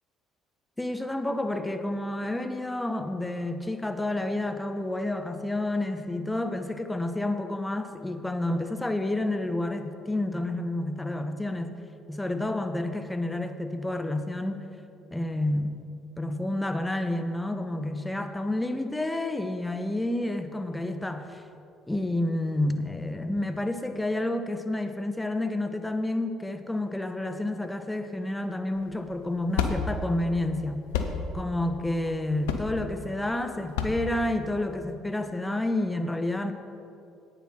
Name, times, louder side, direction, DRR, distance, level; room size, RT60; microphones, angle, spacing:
voice 1, 0.8-11.7 12.1-14.7 15.1-15.8 16.2-21.4 21.9-30.9 31.3-36.5, left 1 dB, 10° left, 7 dB, 0.9 m, -29 dB
sound 1, 28.8-34.9, left 6 dB, 80° left, 0.6 m, -32 dB
10.5 x 9.1 x 4.2 m, 2.6 s
hypercardioid pair, 55°, 0 cm